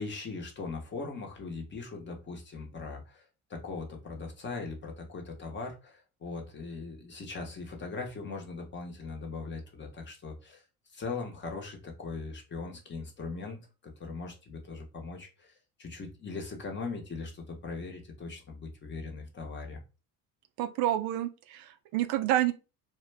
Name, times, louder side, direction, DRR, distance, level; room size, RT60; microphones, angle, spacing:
voice 1, 0.0-3.2 3.5-10.6 10.9-15.5 15.8-19.8, left 4 dB, 30° left, 0.8 m, -40 dB
voice 2, 20.6-22.5, right 13 dB, 75° right, 0.5 m, -29 dB
2.2 x 2.1 x 3.3 m
supercardioid pair, 105°, 39 cm